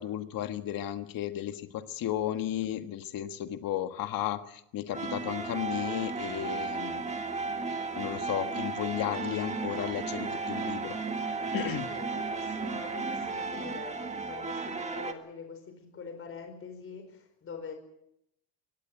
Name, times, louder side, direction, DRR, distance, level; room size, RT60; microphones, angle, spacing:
voice 1, 0.0-7.1 8.0-10.9 11.5-11.9, left 11 dB, 50° left, 9 dB, 1.5 m, -34 dB
sound 1, 4.9-15.1, right 4 dB, 15° right, 1.6 m, -34 dB
voice 2, 11.8-17.7, left 5 dB, 30° left, 6 dB, 4.7 m, -44 dB
23.5 x 18.0 x 7.8 m, 0.77 s
cardioid pair, 170°, 43 cm